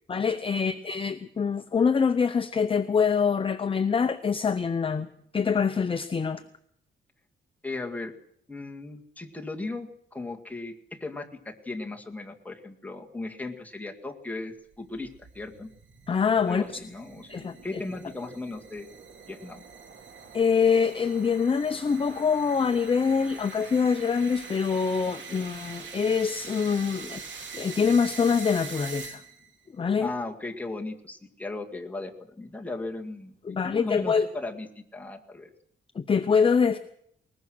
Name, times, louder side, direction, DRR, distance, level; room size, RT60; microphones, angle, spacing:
voice 1, 0.1-5.1 5.3-6.4 16.1-16.6 17.3-17.8 20.3-29.2 29.7-30.1 33.4-34.3 35.9-36.8, left 6 dB, 25° left, 9 dB, 0.7 m, -25 dB
voice 2, 7.6-8.1 8.5-15.7 16.5-18.9 19.3-19.6 30.0-35.5, left 2 dB, 5° left, 1 dB, 2.0 m, -37 dB
sound 1, 14.7-29.5, right 6 dB, 70° right, 2.8 m, -44 dB
20.5 x 20.0 x 6.3 m, 0.67 s
wide cardioid pair, 145°, 20 cm